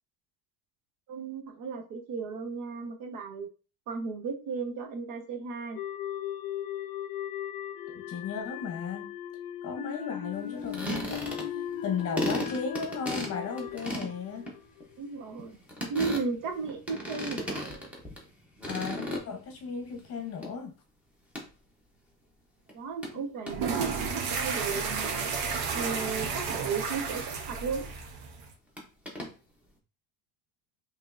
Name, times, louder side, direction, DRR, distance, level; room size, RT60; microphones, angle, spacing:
voice 1, 1.1-3.5 3.9-5.8 15.0-15.6 15.9-17.7 22.7-25.3 25.7-27.8, right 5 dB, 65° right, 1.0 m, -35 dB
sound 1, 5.7-15.0, left 10 dB, 65° left, 0.6 m, -38 dB
voice 2, 7.9-9.1 9.6-14.5 18.7-20.7 23.1-23.2 23.5-23.6, left 6 dB, 40° left, 0.8 m, -36 dB
sound 2, 10.6-11.7 12.0-18.3 18.6-19.7 20.0-20.5 21.3-21.4 22.7-22.8 23.0-23.1 23.5-23.6 28.8-29.3, equal, 5° right, 0.8 m, -35 dB
sound 3, 23.5-28.5, right 5 dB, 90° right, 0.9 m, -32 dB
5.0 x 3.0 x 2.5 m
cardioid pair, 165°, 37 cm